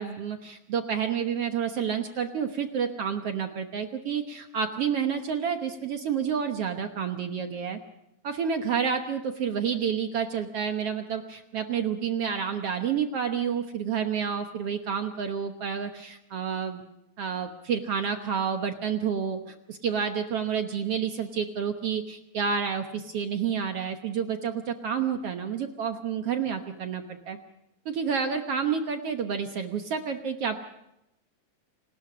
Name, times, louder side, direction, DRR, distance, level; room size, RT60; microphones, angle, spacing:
voice 1, 0.0-7.8 8.2-16.8 17.2-27.4 27.8-30.6, right 7 dB, 60° right, 6 dB, 1.6 m, -29 dB
29.0 x 19.5 x 5.0 m, 0.85 s
omnidirectional pair, 4.0 m